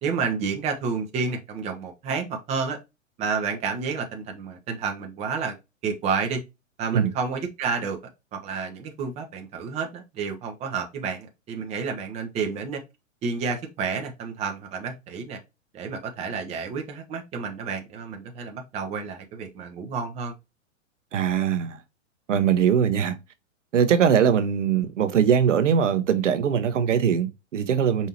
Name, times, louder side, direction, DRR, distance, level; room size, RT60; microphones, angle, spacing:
voice 1, 0.0-2.8 3.2-5.6 5.8-6.4 6.8-8.0 8.3-12.8 13.2-15.4 15.7-20.3, right 5 dB, 15° right, 0.6 m, -30 dB
voice 2, 21.1-21.8 22.3-23.2 23.7-28.1, right 8 dB, 65° right, 0.8 m, -21 dB
5.0 x 2.7 x 2.9 m
figure-of-eight pair, 115°, 39 cm